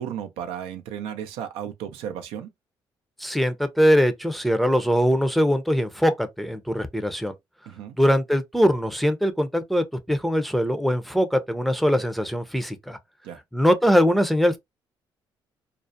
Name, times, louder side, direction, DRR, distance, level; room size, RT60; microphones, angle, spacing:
voice 1, 0.0-2.5 7.7-8.0 13.2-13.4, right 9 dB, 90° right, 0.4 m, -34 dB
voice 2, 3.2-7.3 8.0-13.0 13.5-14.6, equal, ahead, 0.5 m, -22 dB
2.4 x 2.0 x 2.6 m
cardioid pair, 75°, 10 cm